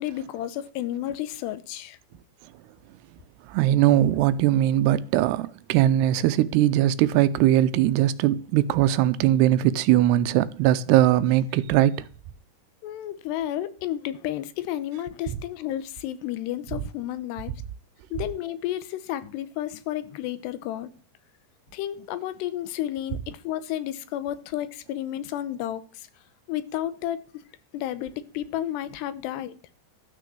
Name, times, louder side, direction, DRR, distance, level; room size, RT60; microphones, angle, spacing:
voice 1, 0.0-2.0 12.8-17.5 18.1-20.9 21.7-26.1 26.5-27.2 27.7-29.6, left 12 dB, 85° left, 3.1 m, -32 dB
voice 2, 3.5-12.0, right 13 dB, 85° right, 2.8 m, -20 dB
12.5 x 6.3 x 7.0 m
omnidirectional pair, 4.7 m